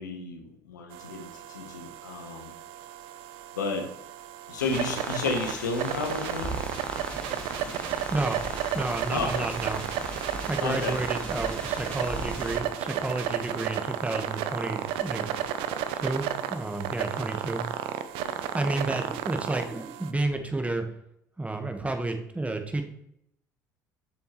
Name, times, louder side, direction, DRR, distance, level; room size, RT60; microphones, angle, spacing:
voice 1, 0.0-2.5 3.6-3.9 4.5-6.6 9.1-9.5 10.6-11.0 18.2-18.4, left 4 dB, 90° left, 5 dB, 1.1 m, -32 dB
sound 1, 0.9-20.1, right 10 dB, 70° right, 0.6 m, -33 dB
sound 2, 4.6-12.6, equal, 10° left, 2.1 m, -39 dB
voice 2, 8.7-9.8 10.3-15.3 15.9-17.6 18.5-20.8 21.4-22.8, right 2 dB, 15° right, 6 dB, 1.3 m, -31 dB
7.1 x 7.0 x 3.1 m, 0.74 s
hypercardioid pair, 65°, 10 cm